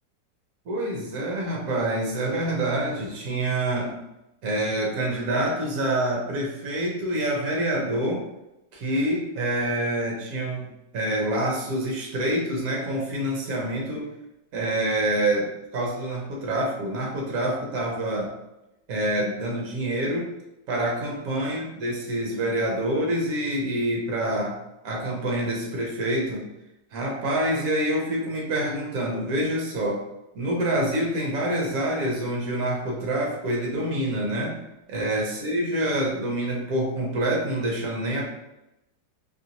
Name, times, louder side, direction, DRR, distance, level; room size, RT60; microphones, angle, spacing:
voice 1, 0.7-4.0 4.4-8.2 8.7-10.7 10.9-14.1 14.5-18.3 18.9-20.3 20.7-24.5 24.8-26.5 26.9-30.0 30.3-34.6 34.9-38.2, right 1 dB, 65° right, -2 dB, 1.0 m, -26 dB
3.0 x 2.5 x 2.8 m, 0.92 s
omnidirectional pair, 2.0 m